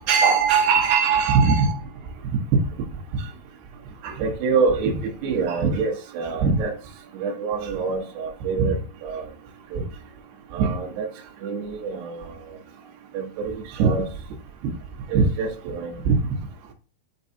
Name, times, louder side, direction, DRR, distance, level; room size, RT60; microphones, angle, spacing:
voice 1, 0.1-1.7 4.0-6.7 7.1-9.2 9.7-9.8 10.5-11.1 11.4-12.2 13.1-14.1 15.1-16.2, right 5 dB, 70° right, 3.2 m, -22 dB
8.1 x 4.7 x 2.8 m
omnidirectional pair, 5.2 m